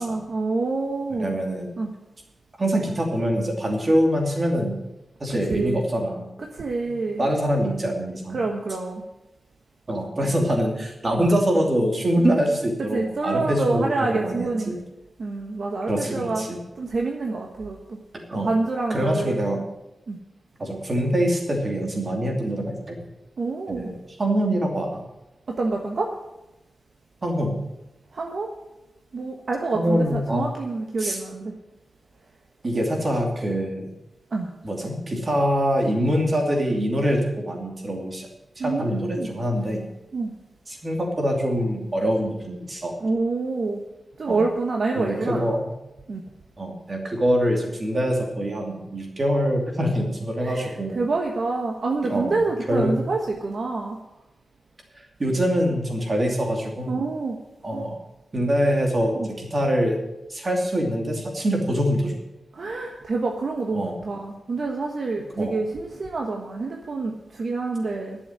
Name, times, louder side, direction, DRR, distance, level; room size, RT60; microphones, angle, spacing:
voice 1, 0.0-1.4 1.8-1.9 5.3-5.9 6.4-7.3 8.3-9.0 11.1-11.2 12.9-14.7 15.2-16.5 16.8-18.0 18.3-19.4 20.1-20.2 23.4-23.9 25.5-26.1 28.1-28.5 29.1-31.5 34.3-34.5 38.6-39.3 40.1-40.3 43.0-43.8 44.2-45.5 46.1-46.2 50.4-54.0 56.9-57.4 57.7-57.8 59.2-59.3 62.5-68.2, right 3 dB, 55° right, 1 dB, 1.2 m, -27 dB
voice 2, 1.1-1.7 2.6-4.7 5.2-6.3 6.9-8.4 9.9-14.8 15.9-16.6 18.3-18.5 18.9-19.6 20.6-23.0 23.7-23.9 24.2-25.0 27.2-27.6 29.7-30.4 31.0-31.2 32.6-33.9 34.6-38.3 38.6-39.8 40.7-42.9 44.3-44.4 45.0-45.7 46.6-51.0 52.0-52.4 52.7-53.0 55.2-56.9 57.6-58.0 58.3-59.9 60.3-62.2 63.7-64.0 65.4-65.6, equal, 30° right, 1 dB, 2.7 m, -24 dB
11.0 x 7.1 x 9.4 m, 0.95 s
wide cardioid pair, 160°, 0 cm